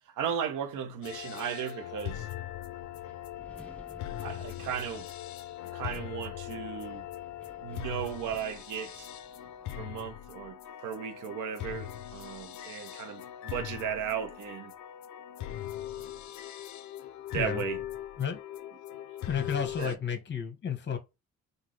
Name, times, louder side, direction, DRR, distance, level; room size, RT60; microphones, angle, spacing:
voice 1, 0.2-2.3 4.2-5.1 5.7-7.0 7.6-9.1 9.7-14.7 16.0-16.1 17.3-17.8 19.8-20.0, right 8 dB, 85° right, 0.9 m, -36 dB
sound 1, 1.0-20.0, left 12 dB, 70° left, 0.4 m, -41 dB
Wind, 2.4-9.7, left 1 dB, 5° left, 1.0 m, -55 dB
voice 2, 19.3-21.0, left 7 dB, 35° left, 1.1 m, -32 dB
3.9 x 2.6 x 3.1 m
cardioid pair, 90°, 30 cm